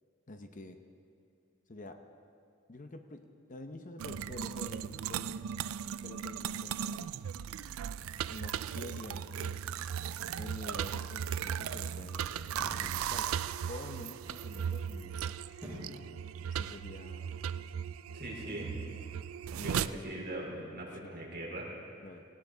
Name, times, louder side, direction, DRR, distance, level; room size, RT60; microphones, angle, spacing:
voice 1, 0.3-0.8 1.7-2.0 2.7-5.4 6.0-7.2 8.3-9.6 10.3-13.3 13.7-15.4 16.4-17.3 19.5-20.6 20.9-21.2 22.0-22.2, left 2 dB, 40° left, 7 dB, 0.7 m, -47 dB
sound 1, 4.0-19.9, right 8 dB, 80° right, 0.4 m, -37 dB
sound 2, 12.6-12.9 15.6-16.0 16.5-16.6, equal, 10° right, 4.8 m, -45 dB
voice 2, 18.1-18.7 19.6-22.1, right 1 dB, 50° right, -4 dB, 4.0 m, -41 dB
18.0 x 18.0 x 3.9 m, 2.4 s
head